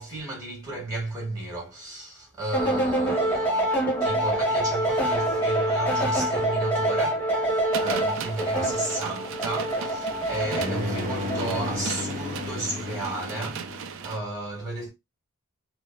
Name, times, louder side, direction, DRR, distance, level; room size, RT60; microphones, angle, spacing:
voice 1, 0.0-14.9, right 2 dB, 15° right, 1.9 m, -34 dB
sound 1, 2.5-11.9, right 1 dB, 5° left, 1.2 m, -26 dB
sound 2, 7.7-14.2, right 7 dB, 60° right, 0.3 m, -37 dB
sound 3, 8.6-14.1, left 2 dB, 35° right, 1.1 m, -34 dB
3.8 x 2.1 x 2.4 m
head